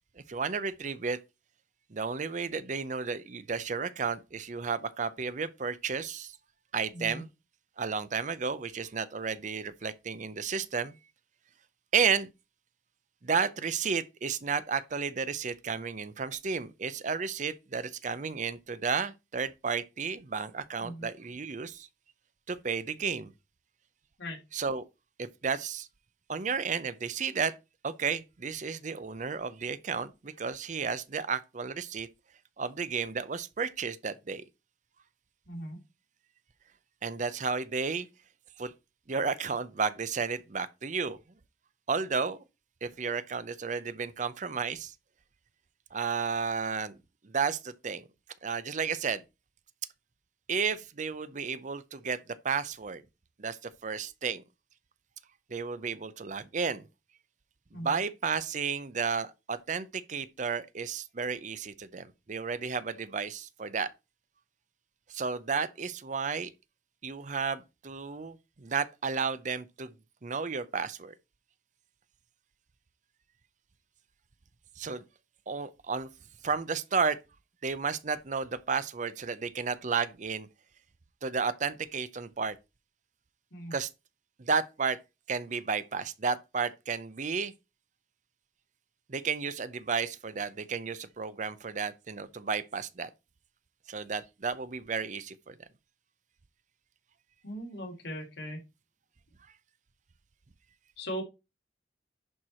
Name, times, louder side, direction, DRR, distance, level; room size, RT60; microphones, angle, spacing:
voice 1, 0.3-1.2 1.9-6.3 6.7-7.3 7.8-10.9 11.9-12.3 13.2-21.9 22.5-23.3 24.5-24.8 25.2-25.9 26.3-27.5 27.8-32.1 32.6-34.4 37.0-38.1 38.6-38.7 39.1-41.2 41.9-42.4 42.8-44.9 45.9-47.0 47.2-48.0 48.4-49.2 50.5-53.0 53.4-53.6 53.8-54.4 55.5-56.9 57.7-63.9 65.1-66.5 67.0-69.9 70.2-71.1 74.8-75.0 75.5-76.1 76.4-77.2 77.6-80.5 81.2-82.6 83.7-83.9 84.4-85.0 85.3-87.5 89.1-93.1 93.9-95.5, right 5 dB, 40° right, 0.6 m, -32 dB
voice 2, 6.9-7.2 20.8-21.1 24.2-24.4 35.5-35.8 57.7-57.9 83.5-83.7 97.4-98.6 101.0-101.2, equal, 70° left, 3.1 m, -39 dB
11.0 x 4.6 x 4.3 m
head